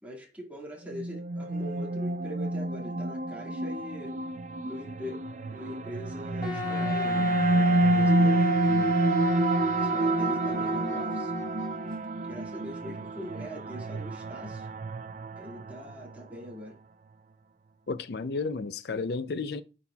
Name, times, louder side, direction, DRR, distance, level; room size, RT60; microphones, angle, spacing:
voice 1, 0.0-4.2 4.6-9.0 9.7-11.3 12.2-14.7 15.4-16.8, equal, 10° right, 1.9 m, -42 dB
sound 1, 0.9-16.2, right 1 dB, 40° right, 0.4 m, -29 dB
Wind instrument woodwind instrument, 6.4-11.9, right 1 dB, 25° left, 1.3 m, -31 dB
voice 2, 17.9-19.6, left 4 dB, 60° left, 0.5 m, -32 dB
11.0 x 4.2 x 2.3 m
head